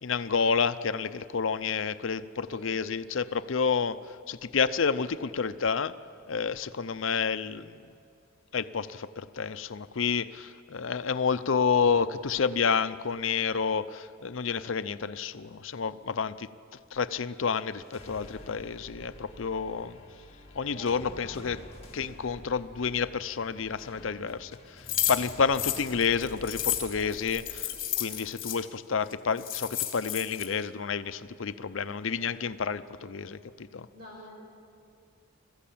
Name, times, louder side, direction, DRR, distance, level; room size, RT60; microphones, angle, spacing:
voice 1, 0.0-4.0 4.3-5.9 6.3-7.7 8.5-16.5 16.9-20.0 20.6-21.6 21.9-24.5 25.1-27.7 28.0-33.9, left 5 dB, 75° left, 13 dB, 0.6 m, -29 dB
sound 1, 17.7-27.9, left 1 dB, 30° left, 2.1 m, -49 dB
voice 2, 20.7-21.5 33.9-34.3, left 1 dB, 55° right, -1 dB, 6.7 m, -46 dB
sound 2, 24.9-28.6 29.1-29.2 29.4-30.5, left 12 dB, 45° left, 2.6 m, -31 dB
21.0 x 15.0 x 8.6 m, 2.4 s
head